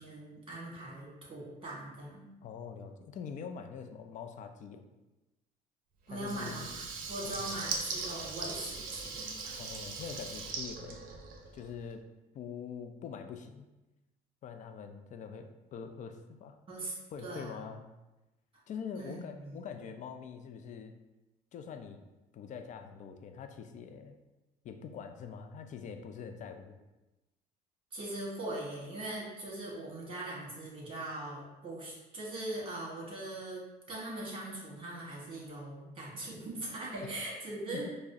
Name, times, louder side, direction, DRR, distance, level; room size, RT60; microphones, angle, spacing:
voice 1, 0.0-2.3 6.1-9.7 16.7-17.6 18.9-19.6 27.9-33.6 33.9-37.9, right 1 dB, 30° right, -4 dB, 1.4 m, -41 dB
voice 2, 2.4-4.8 6.1-6.7 7.2-7.5 9.6-11.0 11.5-12.1 12.3-13.7 14.4-16.6 17.1-17.8 18.7-20.9 21.5-22.0 22.3-24.2 24.6-26.8 37.7-37.9, left 6 dB, 45° left, 7 dB, 0.4 m, -44 dB
Water tap faucet / Liquid, 6.2-11.7, right 4 dB, 55° right, 0.6 m, -40 dB
4.7 x 2.1 x 2.7 m, 1.0 s
cardioid pair, 110°, 17 cm